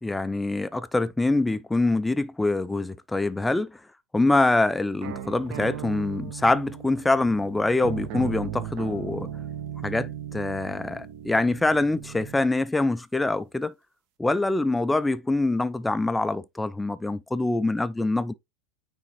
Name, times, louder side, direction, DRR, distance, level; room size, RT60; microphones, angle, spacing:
voice 1, 0.0-3.7 4.1-9.3 9.8-13.7 14.2-18.3, left 2 dB, 5° left, 0.4 m, -25 dB
sound 1, 5.0-12.5, right 10 dB, 50° right, 1.0 m, -37 dB
9.5 x 3.6 x 3.0 m
figure-of-eight pair, 85°, 0 cm